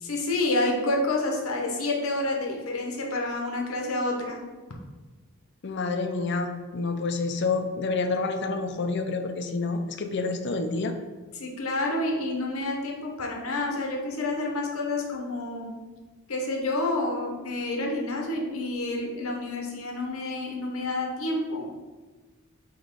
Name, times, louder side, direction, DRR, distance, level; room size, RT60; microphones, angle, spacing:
voice 1, 0.0-4.4 11.4-15.8 16.3-21.6, left 2 dB, 85° left, 0 dB, 1.0 m, -29 dB
voice 2, 5.6-10.9, left 3 dB, 55° left, 6 dB, 0.5 m, -28 dB
8.7 x 3.1 x 3.7 m, 1.3 s
head